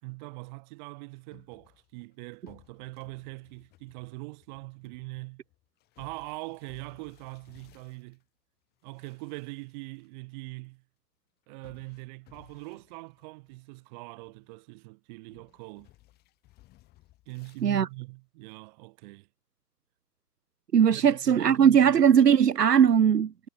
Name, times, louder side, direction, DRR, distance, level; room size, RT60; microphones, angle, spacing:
voice 1, 0.0-5.4 6.0-8.2 8.8-10.8 11.5-15.9 17.3-19.3 20.9-22.1, right 27 dB, 30° right, 3.5 m, -42 dB
sound 1, 1.3-8.2 8.8-10.1 10.3-10.4 11.6-13.9 14.2-14.7 15.3-17.7, left 17 dB, 20° left, 3.5 m, -61 dB
voice 2, 20.7-23.5, right 8 dB, 85° right, 0.6 m, -20 dB
figure-of-eight pair, 120°, 47 cm